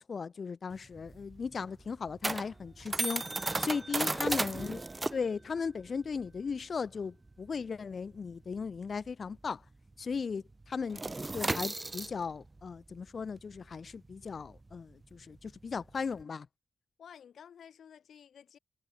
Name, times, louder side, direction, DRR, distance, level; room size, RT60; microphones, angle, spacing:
voice 1, 0.1-3.2 3.6-4.8 5.1-9.6 10.0-11.0 11.3-16.5, left 5 dB, 50° left, 1.0 m, -37 dB
sound 1, 0.7-9.7 9.9-10.2 10.5-16.2, right 2 dB, 25° right, 0.4 m, -36 dB
voice 2, 17.0-18.6, left 8 dB, 75° left, 2.0 m, -53 dB
cardioid pair, 95°, 0 cm